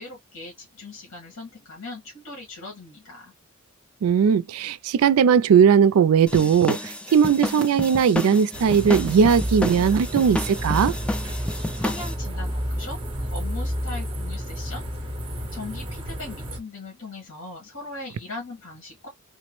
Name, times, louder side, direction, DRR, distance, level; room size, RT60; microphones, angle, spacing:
voice 1, 0.0-3.3 11.7-14.9 15.5-19.1, left 2 dB, 90° left, 1.6 m, -39 dB
voice 2, 4.0-10.9, right 7 dB, 85° right, 0.3 m, -18 dB
sound 1, 6.3-12.1, left 1 dB, 5° left, 0.3 m, -30 dB
sound 2, 8.5-16.6, equal, 25° right, 0.7 m, -30 dB
3.6 x 2.0 x 3.0 m
head